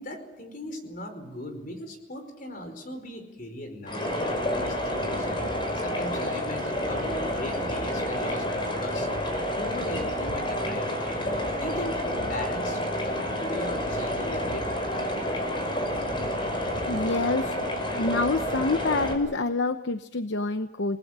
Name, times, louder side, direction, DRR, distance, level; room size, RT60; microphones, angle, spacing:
voice 1, 0.0-4.1 4.5-5.4 5.7-9.1 9.5-11.3 11.6-12.8 13.4-14.7, left 1 dB, 45° left, 6 dB, 4.9 m, -38 dB
sound 1, 3.9-19.1, left 1 dB, 25° left, 5.3 m, -29 dB
voice 2, 16.9-17.6 17.9-21.0, left 3 dB, 65° left, 9 dB, 0.9 m, -27 dB
29.0 x 20.0 x 7.5 m, 0.96 s
head